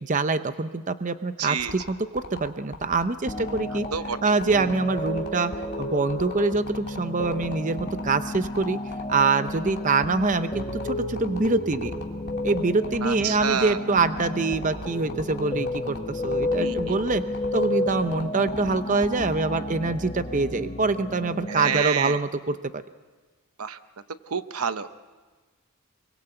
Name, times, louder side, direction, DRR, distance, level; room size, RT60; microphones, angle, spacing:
voice 1, 0.0-3.9 4.2-5.5 5.8-8.8 9.1-11.9 12.4-17.2 17.5-22.6, right 3 dB, 35° right, 11 dB, 0.7 m, -25 dB
voice 2, 1.4-1.7 3.9-4.2 13.0-13.8 16.6-17.0 21.5-22.2 23.6-23.8 24.3-24.9, right 7 dB, 80° right, 11 dB, 0.9 m, -28 dB
sound 1, 1.6-19.4, left 2 dB, 45° left, 2.7 m, -38 dB
sound 2, 3.2-21.8, left 1 dB, 25° left, 1.4 m, -32 dB
25.0 x 23.0 x 7.9 m, 1.3 s
head